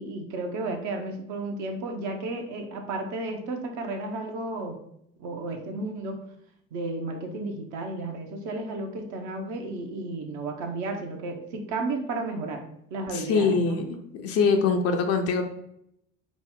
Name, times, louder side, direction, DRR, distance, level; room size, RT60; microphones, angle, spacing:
voice 1, 0.0-4.8 5.2-6.2 6.7-12.6 12.9-13.8, right 2 dB, 45° right, 4 dB, 0.8 m, -33 dB
voice 2, 13.1-13.8 14.1-15.4, left 5 dB, 35° left, 5 dB, 0.5 m, -23 dB
4.7 x 2.1 x 3.8 m, 0.75 s
figure-of-eight pair, 65°, 41 cm